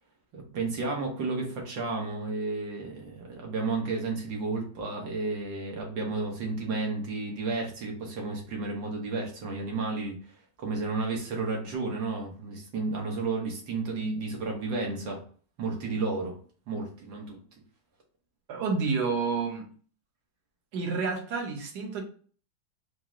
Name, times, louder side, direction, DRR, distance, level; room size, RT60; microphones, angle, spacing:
voice 1, 0.3-10.2 10.6-15.2 15.6-16.4 16.7-17.4, right 3 dB, 80° right, 1.8 m, -32 dB
voice 2, 18.5-19.7 20.7-22.0, right 4 dB, 65° right, 1.3 m, -29 dB
4.7 x 2.1 x 3.6 m
omnidirectional pair, 2.0 m